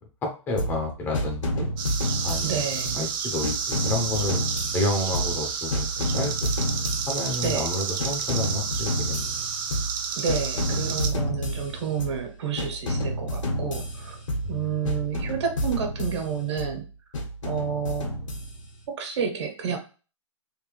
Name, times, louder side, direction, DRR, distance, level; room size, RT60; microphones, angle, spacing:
voice 1, 0.2-1.7 2.2-2.6 2.9-4.4 4.7-6.5 7.1-9.5 14.4-14.7, left 1 dB, 10° left, 0 dB, 0.6 m, -30 dB
sound 1, 0.6-0.9 1.1-3.1 3.4-5.5 5.7-7.7 8.0-10.0 10.3-12.2 12.6-14.6 14.8-16.7 17.1-18.8, equal, 85° left, 1.5 m, -30 dB
sound 2, 1.8-11.1, right 6 dB, 45° right, 0.7 m, -31 dB
voice 2, 2.4-3.0 7.4-7.7 10.1-14.2 14.5-16.8 17.4-18.1 18.9-19.8, right 7 dB, 60° right, 4 dB, 1.3 m, -30 dB
3.4 x 2.7 x 3.1 m, 0.34 s
hypercardioid pair, 145°, 16 cm